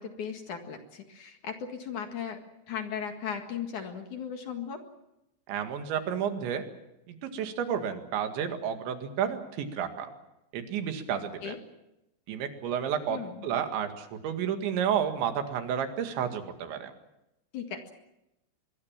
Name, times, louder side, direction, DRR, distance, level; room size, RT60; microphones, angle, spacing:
voice 1, 0.0-2.4 2.7-4.8 11.4-11.6 13.1-13.5 17.5-17.9, left 7 dB, 55° left, 5 dB, 2.7 m, -37 dB
voice 2, 5.5-6.6 7.1-10.1 10.5-11.6 12.3-13.2 13.4-16.9, right 8 dB, 80° right, 6 dB, 4.3 m, -31 dB
25.0 x 21.5 x 7.4 m, 0.89 s
omnidirectional pair, 5.2 m